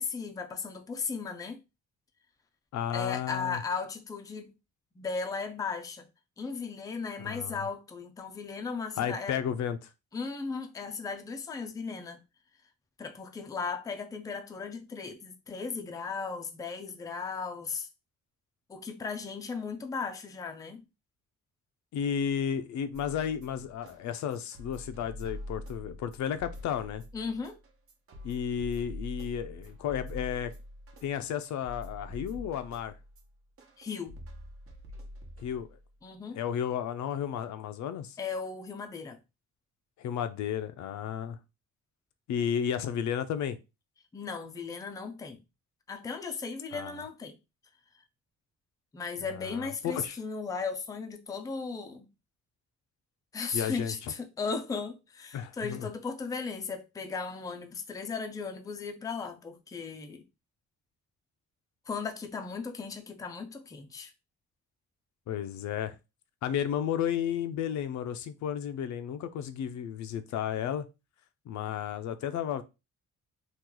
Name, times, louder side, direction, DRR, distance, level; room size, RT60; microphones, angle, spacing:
voice 1, 0.0-1.6 2.9-4.5 5.0-6.0 6.4-9.4 10.1-12.2 13.0-17.9 18.7-20.8 27.1-27.6 33.8-34.1 36.0-36.4 38.2-39.2 44.1-45.4 45.9-47.4 48.9-52.1 53.3-60.2 61.9-64.1, left 5 dB, 10° left, 0.4 m, -36 dB
voice 2, 2.7-3.6 7.2-7.6 9.0-9.9 21.9-27.0 28.2-30.5 31.0-32.9 35.4-35.7 36.3-38.2 40.0-41.4 42.3-43.6 46.7-47.0 49.3-50.1 53.5-54.1 55.3-55.9 65.3-66.0 66.4-70.9 71.5-72.6, left 9 dB, 75° left, 0.5 m, -33 dB
sound 1, 22.9-35.9, left 1 dB, 50° right, 0.9 m, -45 dB
3.0 x 2.3 x 3.7 m
cardioid pair, 155°, 29 cm